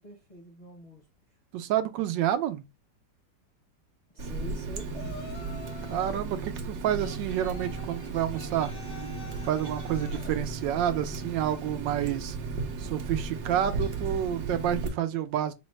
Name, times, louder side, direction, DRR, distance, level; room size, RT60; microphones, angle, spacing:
voice 1, 0.0-1.4 4.1-5.2, left 1 dB, 35° left, 0.7 m, -46 dB
voice 2, 1.5-2.6 5.9-8.7 9.4-12.4 12.8-15.5, right 11 dB, 80° right, 1.2 m, -29 dB
Water tap faucet, 4.2-14.9, right 3 dB, 60° right, 1.0 m, -35 dB
Yell, 4.9-6.3 7.0-10.3, left 6 dB, 75° left, 1.6 m, -46 dB
3.9 x 2.1 x 4.2 m
omnidirectional pair, 2.0 m